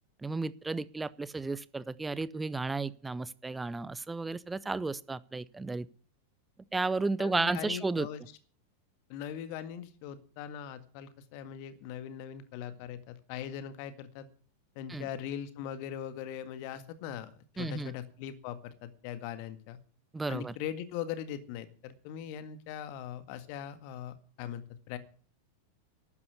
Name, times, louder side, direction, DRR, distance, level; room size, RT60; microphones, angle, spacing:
voice 1, 0.2-5.9 6.7-8.1 14.9-15.1 17.6-17.9 20.1-20.5, right 3 dB, 10° right, 20 dB, 0.6 m, -33 dB
voice 2, 7.2-8.2 9.1-14.3 14.7-17.3 17.6-19.8 20.3-25.0, left 9 dB, 45° left, 11 dB, 1.8 m, -40 dB
12.5 x 9.6 x 8.2 m, 0.43 s
figure-of-eight pair, 90°, 0 cm